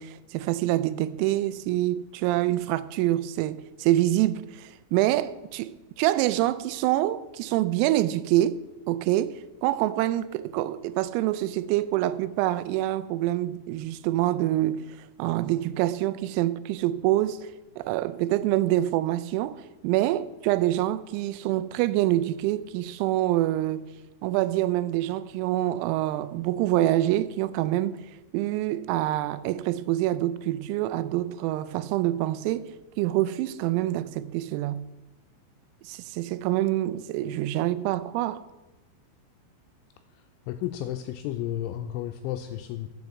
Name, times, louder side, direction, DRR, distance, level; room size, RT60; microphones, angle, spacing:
voice 1, 0.0-8.6 8.9-14.8 15.2-17.5 17.8-23.9 24.2-28.0 28.3-34.8 35.8-38.4, right 15 dB, 90° right, 3.3 m, -26 dB
voice 2, 40.5-42.9, left 12 dB, 85° left, 2.7 m, -32 dB
9.5 x 7.7 x 7.1 m
omnidirectional pair, 5.9 m